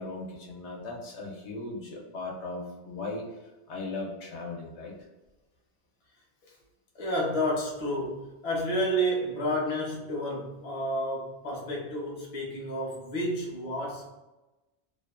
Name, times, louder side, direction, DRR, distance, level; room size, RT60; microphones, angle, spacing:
voice 1, 0.0-3.2 3.7-4.9, left 2 dB, 80° left, -1 dB, 0.9 m, -37 dB
voice 2, 6.9-14.1, equal, 40° left, -4 dB, 0.6 m, -30 dB
2.6 x 2.1 x 2.3 m, 1.1 s
omnidirectional pair, 1.1 m